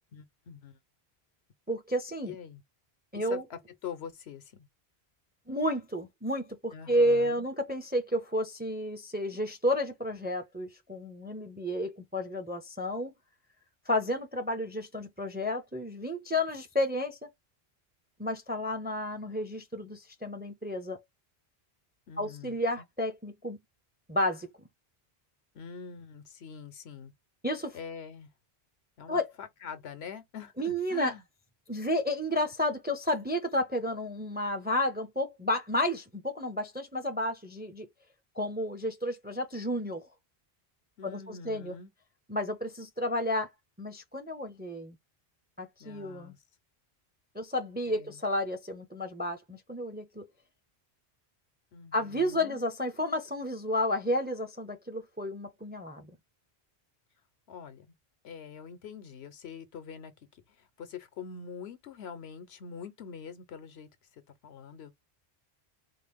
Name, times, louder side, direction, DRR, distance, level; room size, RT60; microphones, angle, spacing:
voice 1, 0.1-0.8 2.3-2.6 3.1-4.7 6.7-7.5 22.1-22.8 25.5-27.1 27.7-28.3 29.0-31.2 41.0-41.9 45.8-46.4 47.9-48.2 51.7-52.6 57.5-57.9 58.2-63.9 64.4-64.9, left 7 dB, 85° left, 1.0 m, -44 dB
voice 2, 1.7-2.4 3.1-3.4 5.5-13.1 13.9-17.2 18.2-21.0 22.2-23.6 24.1-24.5 27.4-27.8 29.1-29.3 30.6-31.1 31.7-37.9 38.4-40.0 41.0-41.7 42.3-43.5 43.8-45.0 45.6-46.3 47.3-50.2 51.9-56.1, left 1 dB, 15° right, 0.4 m, -31 dB
4.2 x 2.0 x 3.4 m
omnidirectional pair, 1.1 m